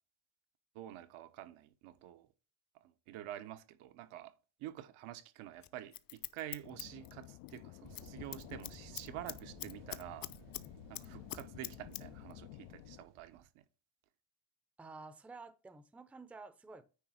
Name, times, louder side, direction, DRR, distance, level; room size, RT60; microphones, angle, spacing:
voice 1, 0.7-2.3 2.8-10.3 10.9-13.6, right 13 dB, 80° right, 1.1 m, -48 dB
Scissors, 5.6-7.6 7.9-8.1 8.3-10.7 10.9-12.0 12.3-12.4, left 13 dB, 45° left, 0.6 m, -44 dB
sound 1, 6.6-13.0, left 18 dB, 90° left, 0.6 m, -52 dB
sound 2, 7.8-13.5, right 12 dB, 60° right, 0.7 m, -59 dB
voice 2, 14.8-16.9, right 3 dB, 5° right, 0.5 m, -51 dB
9.7 x 3.3 x 6.3 m
cardioid pair, 145°, 49 cm